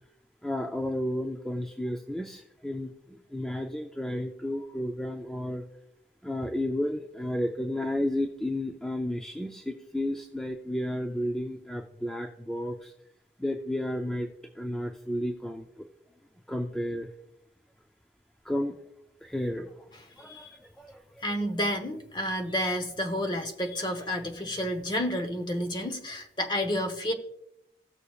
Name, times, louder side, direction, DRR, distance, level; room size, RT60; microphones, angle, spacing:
voice 1, 0.4-2.9 3.3-5.6 6.2-12.9 13.4-14.3 14.6-15.9 16.5-17.1 18.5-18.8 19.2-19.7 20.2-20.5 20.8-21.0, left 1 dB, 5° left, 3 dB, 0.4 m, -32 dB
voice 2, 21.2-27.1, equal, 25° left, 6 dB, 0.9 m, -30 dB
16.5 x 6.7 x 2.4 m, 0.80 s
head